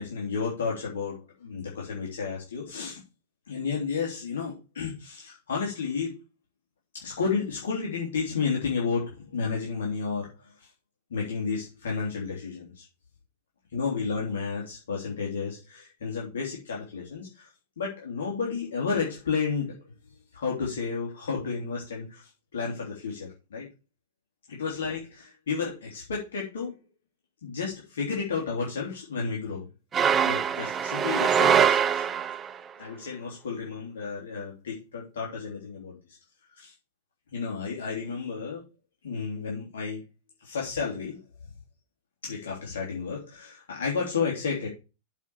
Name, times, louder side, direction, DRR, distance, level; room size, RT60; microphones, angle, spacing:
voice 1, 0.0-3.0 3.5-6.2 6.9-10.3 11.1-12.8 13.7-17.5 17.8-19.8 20.3-23.7 24.5-26.7 27.4-29.6 30.2-32.0 32.8-36.0 36.5-36.7 37.3-38.6 39.0-40.0 40.4-41.2 42.2-44.7, left 5 dB, 85° left, -3 dB, 3.1 m, -32 dB
sound 1, 29.9-32.6, right 8 dB, 25° right, 0.7 m, -23 dB
7.4 x 4.8 x 6.8 m, 0.30 s
hypercardioid pair, 120°, 0 cm